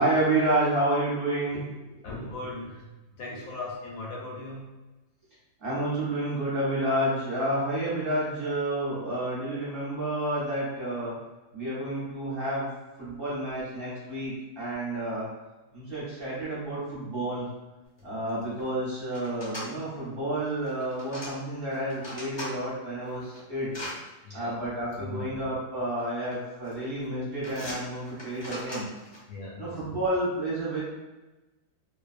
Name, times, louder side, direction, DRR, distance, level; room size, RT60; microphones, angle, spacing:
voice 1, 0.0-2.2 5.6-11.1 11.5-12.7 13.0-15.3 15.7-17.4 18.0-23.7 24.3-28.8 29.6-30.8, right 1 dB, 45° right, -9 dB, 0.8 m, -30 dB
voice 2, 2.0-4.7 24.2-24.6 25.0-25.3 29.3-29.8, left 3 dB, 70° left, -4 dB, 0.9 m, -39 dB
sound 1, 18.0-18.1 18.3-18.6 19.1-19.7 20.6-21.3 21.7-22.5 23.0-24.0 24.9-25.0 26.0-26.4 26.7-27.0 27.4-29.2, left 1 dB, 25° left, 0.6 m, -40 dB
2.5 x 2.2 x 2.4 m, 1.1 s
omnidirectional pair, 1.7 m